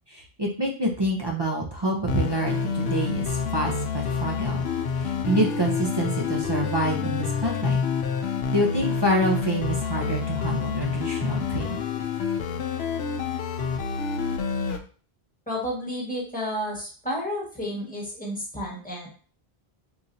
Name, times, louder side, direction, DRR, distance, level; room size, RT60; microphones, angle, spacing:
voice 1, 0.1-4.6 5.0-7.8 8.5-11.8, right 1 dB, 35° right, 0 dB, 0.5 m, -27 dB
sound 1, 2.1-14.8, left 5 dB, 75° left, 0.8 m, -28 dB
voice 2, 15.5-19.1, equal, 10° left, -5 dB, 1.4 m, -31 dB
4.5 x 2.6 x 2.6 m, 0.40 s
omnidirectional pair, 1.1 m